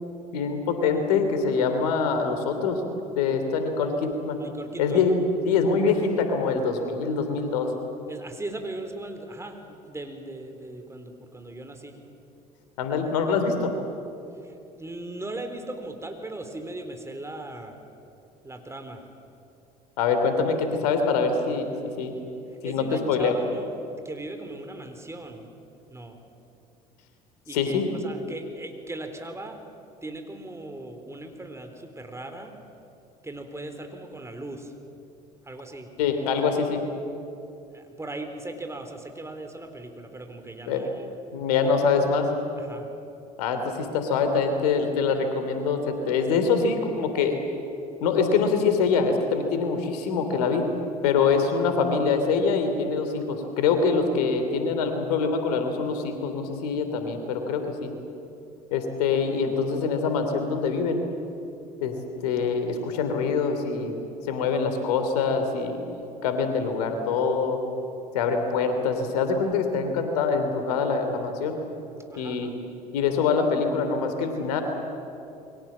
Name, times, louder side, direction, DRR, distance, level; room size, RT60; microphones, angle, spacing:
voice 1, 0.3-2.8 3.1-4.4 4.8-5.1 5.4-7.7 12.8-13.7 20.0-22.1 22.6-23.4 27.5-27.9 36.0-36.8 40.7-40.9 41.3-42.3 43.4-47.4 48.0-50.7 51.0-57.9 58.7-61.0 61.8-62.0 62.2-64.0 64.3-65.8 66.2-67.6 68.1-71.6 72.2-72.5 72.9-74.6, left 5 dB, 75° left, 7 dB, 3.3 m, -24 dB
voice 2, 4.4-5.0 8.1-12.0 14.4-17.8 18.4-19.0 22.6-25.5 25.9-26.2 27.5-29.6 30.0-32.5 33.2-34.7 35.4-35.9 37.7-41.1 42.6-42.9 72.1-72.5, right 2 dB, 15° right, 6 dB, 4.0 m, -39 dB
28.0 x 23.0 x 7.5 m, 2.7 s
hypercardioid pair, 65°, 20 cm